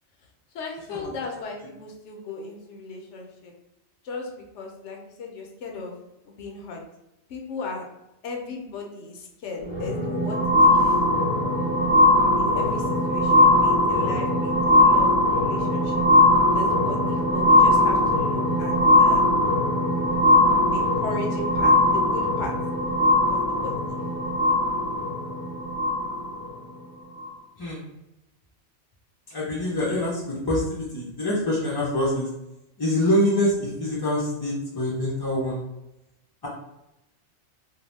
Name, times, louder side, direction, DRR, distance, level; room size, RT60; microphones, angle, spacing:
voice 1, 0.5-3.5 4.0-6.0 6.3-6.8 7.3-7.8 8.2-11.0 12.4-15.9 16.5-19.2 20.7-22.5 23.3-24.0, left 3 dB, 85° left, 1 dB, 0.9 m, -36 dB
sound 1, 9.6-26.5 27.2-27.3, left 1 dB, 30° right, 0.8 m, -20 dB
voice 2, 29.3-32.3 32.8-35.6, left 1 dB, 40° left, -6 dB, 0.3 m, -25 dB
2.6 x 2.0 x 3.1 m, 0.91 s
omnidirectional pair, 1.2 m